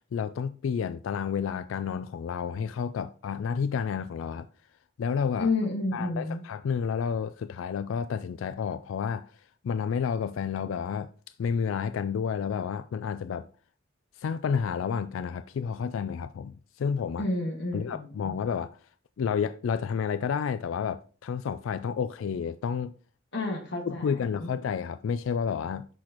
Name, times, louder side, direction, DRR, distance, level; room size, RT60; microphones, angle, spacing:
voice 1, 0.1-4.5 5.0-5.5 5.9-9.3 9.6-11.1 11.4-13.5 14.2-17.2 17.7-18.8 19.2-22.9 23.9-25.9, left 6 dB, 80° left, 0.3 m, -30 dB
voice 2, 5.4-6.4 17.2-18.3 23.3-24.5, left 2 dB, 60° left, 1.6 m, -30 dB
6.5 x 6.1 x 2.9 m
head